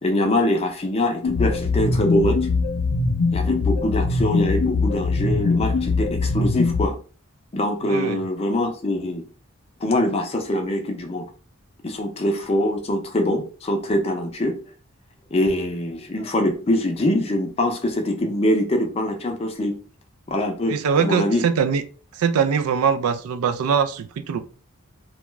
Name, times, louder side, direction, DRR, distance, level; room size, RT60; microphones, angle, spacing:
voice 1, 0.0-2.5 3.3-6.9 7.5-9.2 9.8-11.2 11.8-14.6 15.3-19.7 20.3-21.4, left 1 dB, 25° left, 0.4 m, -23 dB
sound 1, 1.2-6.9, left 3 dB, 80° left, 0.5 m, -22 dB
voice 2, 7.8-8.2 20.7-21.8 22.1-24.4, right 6 dB, 80° right, 0.3 m, -22 dB
2.4 x 2.2 x 3.0 m
head